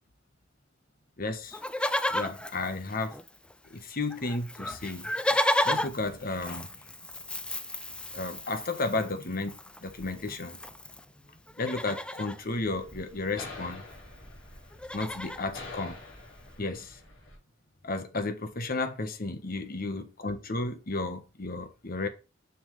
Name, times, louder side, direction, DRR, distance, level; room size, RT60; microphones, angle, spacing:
voice 1, 1.2-1.6 2.1-3.1 3.7-5.1 5.6-6.7 8.1-10.6 11.6-13.8 14.9-16.0 16.6-16.9 17.8-22.1, left 3 dB, 50° left, 1.5 m, -33 dB
Livestock farm animals working animals, 1.5-3.5 3.8-3.9 4.1-11.0 11.5-12.4 13.6-13.7 13.9-14.2 14.5-15.5 16.1-16.2, left 1 dB, 5° left, 0.4 m, -33 dB
sound 1, 12.4-17.4, left 2 dB, 80° left, 4.4 m, -46 dB
7.2 x 7.0 x 3.4 m
head